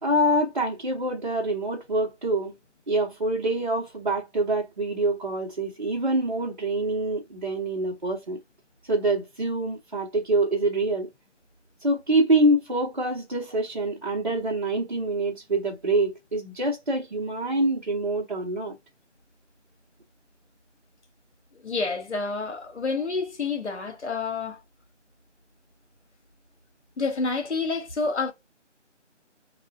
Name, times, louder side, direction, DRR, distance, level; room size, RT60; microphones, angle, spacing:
voice 1, 0.0-2.5 2.9-8.4 8.9-11.1 11.8-18.7, right 1 dB, 40° right, 0.8 m, -25 dB
voice 2, 21.5-24.6 27.0-28.3, left 4 dB, 65° left, 1.0 m, -28 dB
3.5 x 2.3 x 2.3 m
figure-of-eight pair, 160°, 36 cm